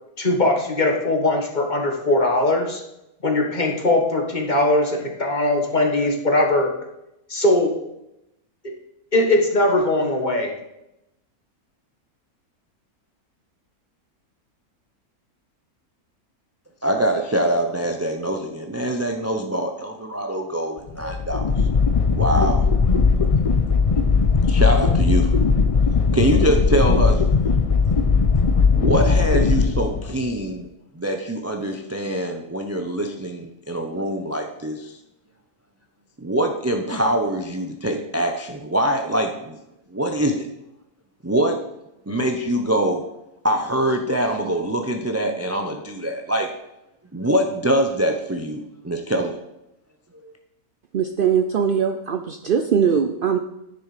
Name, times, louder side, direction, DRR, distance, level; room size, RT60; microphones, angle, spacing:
voice 1, 0.2-2.8 3.2-6.8 7.3-7.8 9.1-10.5, left 2 dB, 30° left, 2 dB, 1.4 m, -20 dB
voice 2, 16.8-21.5 22.1-22.6 24.5-25.3 26.1-27.2 28.7-30.7 31.0-35.0 36.2-39.6 39.9-40.5 41.2-41.6 42.1-43.0 43.4-46.5 47.1-49.3 50.2-50.3, right 1 dB, 20° right, 4 dB, 0.4 m, -24 dB
sound 1, 20.9-30.4, left 5 dB, 60° left, 0.3 m, -18 dB
voice 3, 50.9-53.4, right 7 dB, 85° right, 8 dB, 0.4 m, -21 dB
10.0 x 6.9 x 4.9 m, 0.87 s
omnidirectional pair, 1.6 m